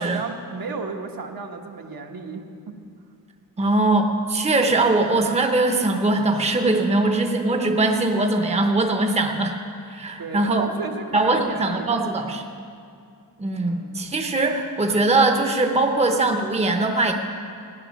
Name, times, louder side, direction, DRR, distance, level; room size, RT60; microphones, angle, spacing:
voice 1, 0.0-2.7 10.2-12.1 13.6-14.0, right 4 dB, 70° right, 3 dB, 1.3 m, -33 dB
voice 2, 3.6-9.6 9.9-10.7 11.1-12.4 13.4-17.1, right 2 dB, 15° right, 4 dB, 0.8 m, -21 dB
14.5 x 10.0 x 6.4 m, 2.4 s
wide cardioid pair, 155°, 37 cm